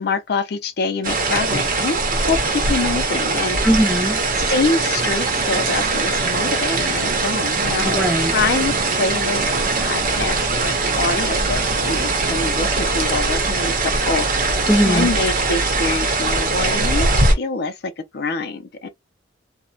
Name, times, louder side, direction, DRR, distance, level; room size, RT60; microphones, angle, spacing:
voice 1, 0.0-3.6 4.5-8.1 8.3-18.9, left 4 dB, 65° left, 0.5 m, -25 dB
sound 1, 1.0-17.3, right 3 dB, 50° right, 0.8 m, -21 dB
voice 2, 3.6-4.2 7.8-8.4 14.7-15.1, equal, ahead, 0.4 m, -19 dB
sound 2, 3.8-13.5, right 6 dB, 70° right, 0.3 m, -35 dB
2.6 x 2.1 x 2.3 m
head